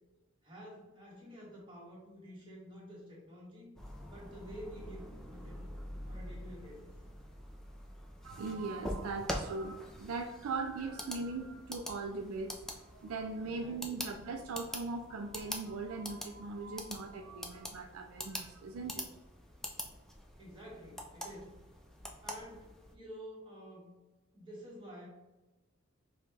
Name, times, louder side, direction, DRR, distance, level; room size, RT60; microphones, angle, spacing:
voice 1, 0.4-3.7 4.0-5.7 6.0-6.9 13.4-14.0 20.4-21.5 22.2-24.0 24.3-25.1, equal, 25° right, -5 dB, 1.3 m, -50 dB
sound 1, 3.8-22.9, equal, ahead, 0.3 m, -45 dB
voice 2, 8.2-19.1, right 3 dB, 80° right, 4 dB, 0.4 m, -40 dB
5.0 x 2.2 x 3.3 m, 1.1 s
head